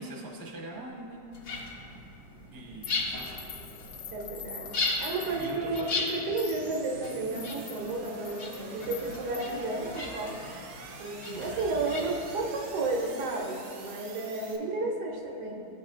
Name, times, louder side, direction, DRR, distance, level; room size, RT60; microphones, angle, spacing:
voice 1, 0.0-1.3 1.8-1.9 2.5-3.4 5.4-5.9 11.3-11.8, right 1 dB, 20° right, -3 dB, 0.6 m, -42 dB
sound 1, 1.0-14.6, right 3 dB, 60° right, 0.8 m, -47 dB
sound 2, 1.3-13.1, left 3 dB, 55° left, 1.1 m, -38 dB
sound 3, 2.8-9.7, left 8 dB, 85° left, 1.3 m, -46 dB
voice 2, 4.1-10.3 11.0-15.7, right 2 dB, 85° right, -1 dB, 1.5 m, -32 dB
12.0 x 4.1 x 2.4 m, 2.7 s
omnidirectional pair, 1.7 m